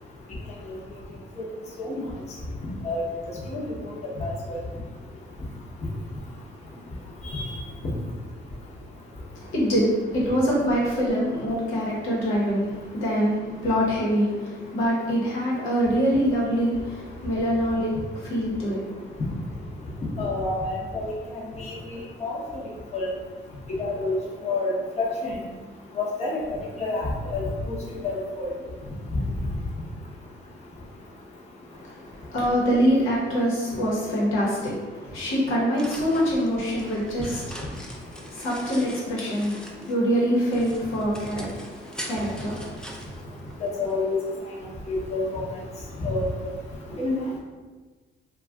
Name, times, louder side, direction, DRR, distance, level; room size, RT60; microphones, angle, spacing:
voice 1, 4.2-4.6 7.3-7.4 20.2-21.1 21.6-22.4 22.9-23.1 23.8-24.2 24.4-25.3 26.0-27.8 28.0-28.5 43.6-44.2 44.8-45.4 46.0-46.5 47.0-47.2, left 2 dB, 35° left, -5 dB, 0.8 m, -28 dB
voice 2, 9.3-19.2 19.7-19.9 31.7-43.4 46.9-47.0, equal, 85° left, -5 dB, 1.0 m, -25 dB
sound 1, 35.4-40.1 40.4-43.9, equal, 5° left, 0.4 m, -42 dB
2.4 x 2.3 x 3.5 m, 1.4 s
cardioid pair, 90°, 20 cm